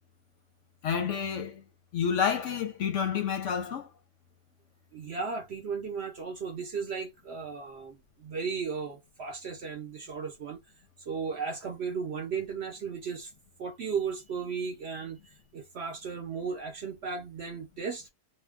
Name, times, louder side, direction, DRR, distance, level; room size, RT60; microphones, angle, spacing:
voice 1, 0.8-1.6 1.9-3.9, left 7 dB, 65° left, 0.8 m, -29 dB
voice 2, 4.9-10.6 11.0-13.3 13.6-15.2 15.5-18.1, right 5 dB, 60° right, 0.8 m, -35 dB
2.7 x 2.2 x 3.3 m
omnidirectional pair, 1.6 m